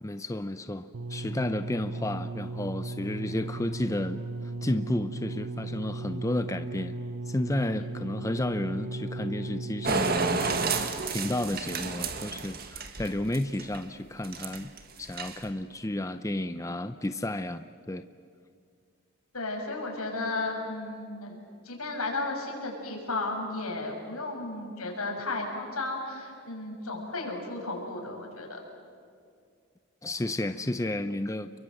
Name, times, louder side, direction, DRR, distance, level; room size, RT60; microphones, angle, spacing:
voice 1, 0.0-14.7 15.0-18.0 30.0-31.6, left 1 dB, 15° left, 10 dB, 0.6 m, -32 dB
sound 1, 0.9-11.1 11.9-12.0, right 2 dB, 70° right, 0.9 m, -36 dB
sound 2, 9.8-13.8 14.2-14.8 15.0-15.5, right 4 dB, 45° right, 1.9 m, -30 dB
voice 2, 19.3-28.6, left 2 dB, 80° left, 1 dB, 6.4 m, -34 dB
30.0 x 23.0 x 7.8 m, 2.3 s
head